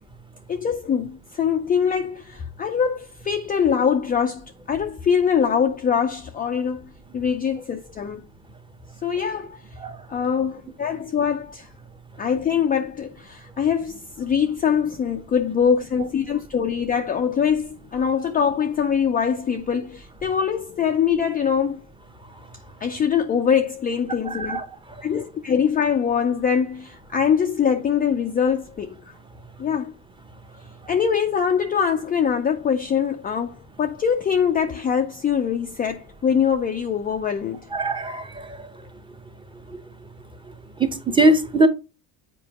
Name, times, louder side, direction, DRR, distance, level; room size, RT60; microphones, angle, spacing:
voice 1, 0.5-8.2 9.0-9.6 10.1-11.7 12.2-21.8 22.8-24.6 25.0-29.0 29.6-29.9 30.9-37.6, left 7 dB, 20° left, 0.5 m, -23 dB
voice 2, 24.3-24.6 37.7-38.7 39.7-39.8 40.8-41.7, right 1 dB, 10° right, 0.9 m, -21 dB
7.5 x 4.5 x 2.9 m
supercardioid pair, 105°, 45 cm